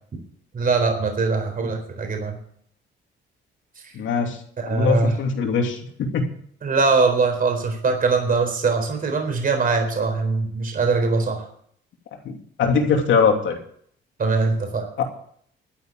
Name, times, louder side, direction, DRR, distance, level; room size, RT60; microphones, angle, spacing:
voice 1, 0.5-2.4 3.8-3.9 4.6-5.2 6.6-11.5 14.2-14.9, right 4 dB, 45° right, 4 dB, 4.1 m, -22 dB
voice 2, 3.9-4.4 4.7-5.8 6.1-6.3 12.2-13.6 15.0-15.1, left 5 dB, 75° left, 3 dB, 2.8 m, -21 dB
12.0 x 9.7 x 7.7 m, 0.63 s
cardioid pair, 90°, 20 cm